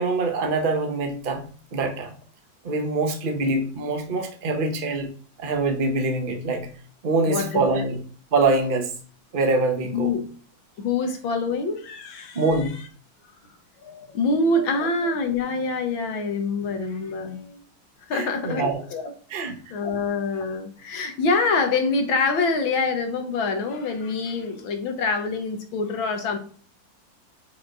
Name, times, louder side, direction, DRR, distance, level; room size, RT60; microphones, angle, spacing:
voice 1, 0.0-1.5 1.7-2.1 2.6-5.1 5.4-6.7 7.0-8.0 8.3-8.9 9.3-10.1 12.3-12.8 18.1-18.8 19.3-19.6, right 3 dB, 40° right, 0.8 m, -24 dB
voice 2, 7.3-7.6 9.9-10.3 10.8-12.4 12.7-12.8 13.8-17.6 18.1-26.4, left 3 dB, 80° left, 1.8 m, -26 dB
5.7 x 3.8 x 4.6 m
omnidirectional pair, 2.2 m